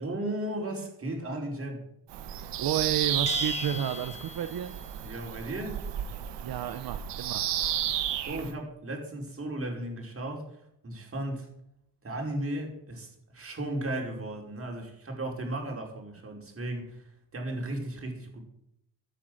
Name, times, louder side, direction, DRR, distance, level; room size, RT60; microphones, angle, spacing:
voice 1, 0.0-1.9 5.0-5.8 7.8-10.6 10.8-11.5 12.0-18.5, right 1 dB, 35° right, 1 dB, 5.1 m, -35 dB
Bird vocalization bird call bird song, 2.1-8.5, right 10 dB, 80° right, 1.6 m, -32 dB
voice 2, 2.6-4.8 6.4-7.5, right 10 dB, 60° right, 9 dB, 1.1 m, -31 dB
Bell, 3.3-4.8, left 4 dB, 15° left, 1.5 m, -37 dB
14.0 x 9.5 x 7.8 m, 0.78 s
cardioid pair, 105°, 41 cm